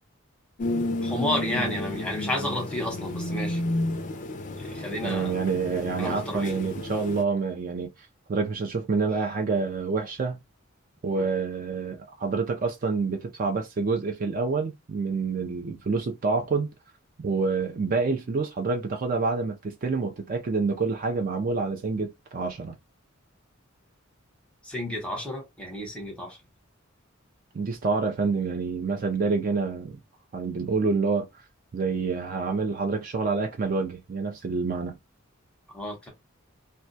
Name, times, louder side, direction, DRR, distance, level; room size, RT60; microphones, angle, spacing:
sound 1, 0.6-7.2, left 1 dB, 35° left, 0.4 m, -31 dB
voice 1, 1.0-3.6 4.6-5.3 6.0-6.6 11.1-11.3 24.6-26.4 35.7-36.1, left 1 dB, 5° left, 0.8 m, -31 dB
voice 2, 5.0-10.4 11.0-16.7 17.2-22.7 27.5-30.0 30.3-31.4 31.7-35.0, right 4 dB, 40° right, 0.4 m, -27 dB
2.2 x 2.1 x 2.6 m
head